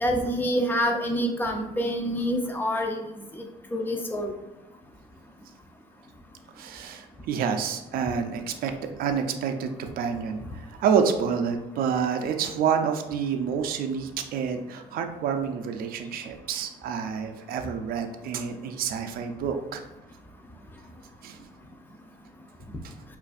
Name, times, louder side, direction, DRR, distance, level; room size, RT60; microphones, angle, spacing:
voice 1, 0.0-3.0 3.3-3.4 3.7-4.3, equal, 10° left, 3 dB, 0.5 m, -26 dB
voice 2, 6.6-8.7 9.0-19.8 21.2-21.5 22.8-22.9, right 7 dB, 60° right, 6 dB, 0.4 m, -28 dB
5.0 x 2.5 x 2.4 m, 1.0 s
cardioid pair, 110°, 17 cm